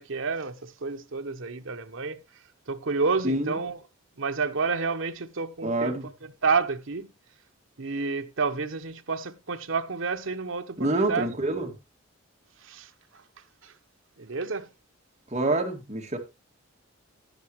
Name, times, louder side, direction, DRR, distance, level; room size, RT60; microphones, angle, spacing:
voice 1, 0.0-2.2 2.7-3.8 4.2-7.1 7.8-11.3 12.6-13.2 13.6-13.7 14.2-14.7, right 4 dB, 65° right, 0.9 m, -30 dB
voice 2, 3.2-3.6 5.6-6.1 10.8-11.7 15.3-16.2, right 2 dB, 30° right, 2.1 m, -27 dB
10.5 x 10.5 x 3.1 m
head